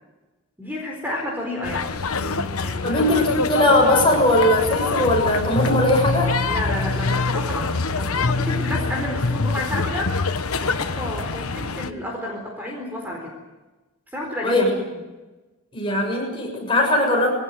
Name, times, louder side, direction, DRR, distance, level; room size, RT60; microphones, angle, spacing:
voice 1, 0.6-3.0 6.5-10.2 10.6-13.3 14.1-14.7, left 1 dB, 10° right, 0 dB, 4.2 m, -31 dB
sound 1, 1.6-11.9, left 4 dB, 90° left, 1.2 m, -26 dB
voice 2, 2.8-6.3 14.4-14.7 15.7-17.3, left 1 dB, 25° left, 0 dB, 6.6 m, -19 dB
sound 2, 5.0-10.4, left 3 dB, 70° left, 0.9 m, -26 dB
22.0 x 18.0 x 9.4 m, 1.1 s
head